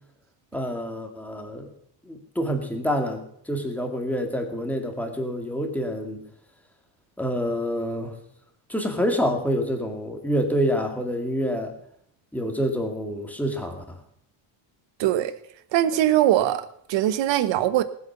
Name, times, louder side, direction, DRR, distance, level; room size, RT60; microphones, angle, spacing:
voice 1, 0.5-1.7 2.1-6.2 7.2-8.2 8.7-11.7 12.3-14.0, equal, 5° left, 3 dB, 2.2 m, -27 dB
voice 2, 15.0-15.3 15.7-17.8, right 13 dB, 70° right, 13 dB, 1.2 m, -21 dB
19.0 x 8.0 x 5.8 m, 0.70 s
cardioid pair, 140°, 45 cm